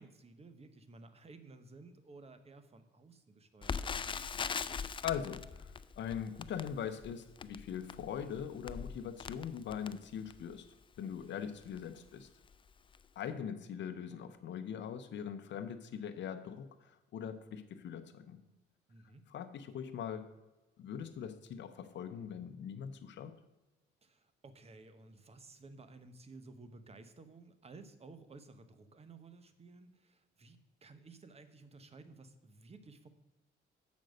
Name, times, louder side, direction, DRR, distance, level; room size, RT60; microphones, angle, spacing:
voice 1, 0.0-4.1 11.2-11.5 18.9-19.2 24.0-33.1, right 3 dB, 30° right, 0.9 m, -55 dB
Crackle, 3.6-10.6 11.2-11.3 11.6-11.8 12.4-12.7 12.9-13.0, left 6 dB, 25° left, 0.3 m, -41 dB
voice 2, 4.5-12.3 13.2-18.4 19.3-20.4 20.8-23.4, left 8 dB, 65° left, 0.7 m, -42 dB
7.5 x 5.3 x 6.4 m
cardioid pair, 90°, 20 cm